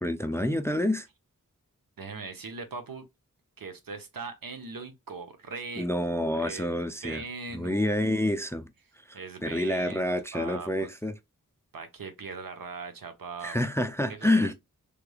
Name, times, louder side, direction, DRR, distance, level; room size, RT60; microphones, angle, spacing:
voice 1, 0.0-1.1 5.8-7.2 7.5-8.7 9.1-11.1 13.4-14.5, left 1 dB, 10° left, 0.3 m, -28 dB
voice 2, 2.0-3.0 3.6-5.9 6.3-8.4 9.1-10.9 11.7-13.6 14.1-14.5, right 4 dB, 80° right, 0.9 m, -40 dB
3.3 x 3.2 x 2.3 m
wide cardioid pair, 95°, 34 cm